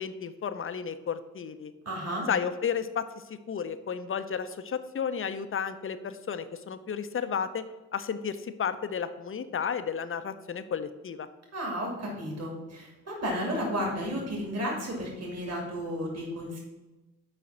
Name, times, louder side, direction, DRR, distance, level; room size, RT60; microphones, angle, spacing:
voice 1, 0.0-1.7 2.3-7.6 7.9-11.3, left 7 dB, 30° left, 11 dB, 0.7 m, -33 dB
voice 2, 1.8-2.3 11.5-16.6, equal, 40° right, -1 dB, 2.7 m, -33 dB
6.5 x 5.0 x 5.7 m, 1.1 s
hypercardioid pair, 45°, 40 cm